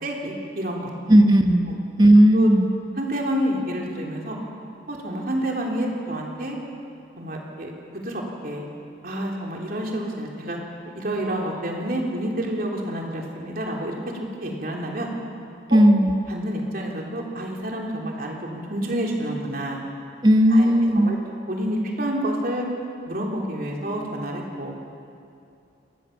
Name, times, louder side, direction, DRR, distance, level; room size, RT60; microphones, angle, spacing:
voice 1, 0.0-0.9 1.7-1.8 2.3-2.5 3.0-4.4 4.9-6.6 7.2-8.7 9.0-10.6 10.9-14.0 14.4-15.1 15.7-15.8 16.3-19.8 20.5-21.2 21.5-22.7 23.1-24.7, right 1 dB, 50° right, -1 dB, 3.5 m, -29 dB
voice 2, 1.1-1.7 2.0-2.7 15.7-16.1 20.2-21.1, right 1 dB, 25° right, 5 dB, 1.2 m, -15 dB
28.5 x 15.0 x 7.2 m, 2.6 s
head